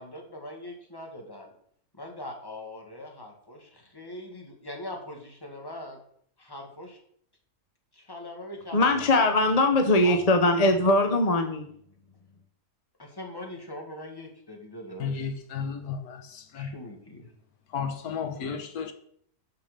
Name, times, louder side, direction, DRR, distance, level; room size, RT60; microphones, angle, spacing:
voice 1, 0.0-1.5 1.9-6.0 6.4-7.0 7.9-9.1 10.0-10.2 13.0-15.3 16.5-17.3, left 1 dB, 15° left, 1.8 m, -41 dB
voice 2, 8.7-11.7, left 2 dB, 35° left, 0.7 m, -21 dB
voice 3, 15.0-16.7 17.7-18.9, left 6 dB, 80° left, 1.4 m, -33 dB
6.8 x 6.0 x 6.7 m
omnidirectional pair, 1.6 m